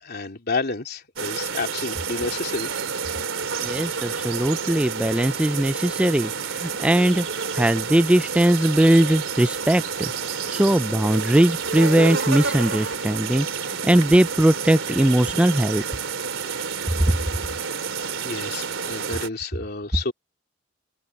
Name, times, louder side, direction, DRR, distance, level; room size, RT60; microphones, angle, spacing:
voice 1, 0.0-2.7 18.2-20.1, left 3 dB, 50° left, 3.2 m, -30 dB
sound 1, 1.2-19.3, right 5 dB, 70° right, 3.7 m, -29 dB
voice 2, 3.6-7.3 7.5-15.8 17.1-17.2, right 1 dB, 5° right, 0.3 m, -20 dB
open air
head